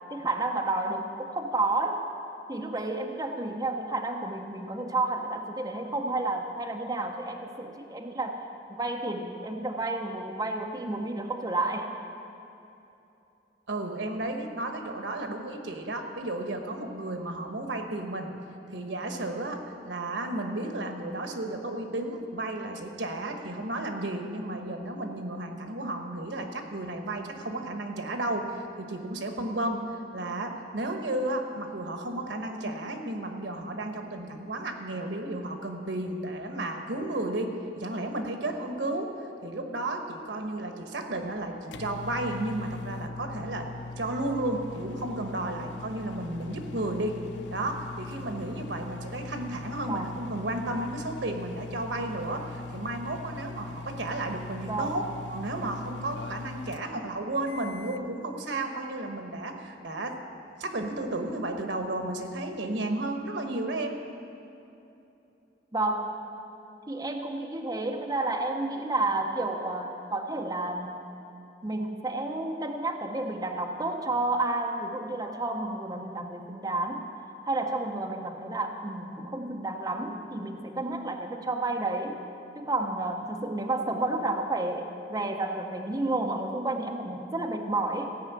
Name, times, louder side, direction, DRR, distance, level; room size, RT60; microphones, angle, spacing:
voice 1, 0.1-2.0 2.5-8.4 8.7-11.9 49.9-50.1 54.7-55.0 65.7-66.2 66.9-71.1 71.6-77.1 77.4-82.2 82.5-88.1, right 2 dB, 20° right, 2 dB, 0.6 m, -31 dB
voice 2, 13.7-18.4 18.7-39.1 39.4-43.7 44.0-47.2 47.5-55.0 55.3-60.2 60.6-63.9, right 2 dB, 85° right, 4 dB, 1.1 m, -33 dB
sound 1, 41.1-58.1, left 3 dB, 80° left, 0.4 m, -41 dB
15.5 x 5.6 x 8.2 m, 2.9 s
head